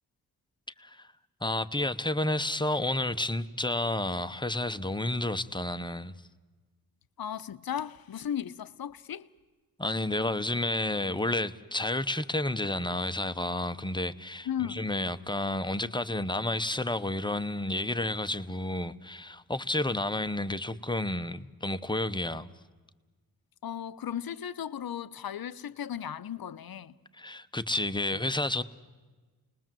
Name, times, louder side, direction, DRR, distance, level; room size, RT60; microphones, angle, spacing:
voice 1, 1.4-6.1 9.8-22.5 27.2-28.6, left 1 dB, 10° left, 0.9 m, -31 dB
voice 2, 7.2-9.3 14.4-14.9 23.6-26.9, left 9 dB, 65° left, 0.9 m, -36 dB
29.5 x 20.5 x 7.6 m
wide cardioid pair, 105°, 39 cm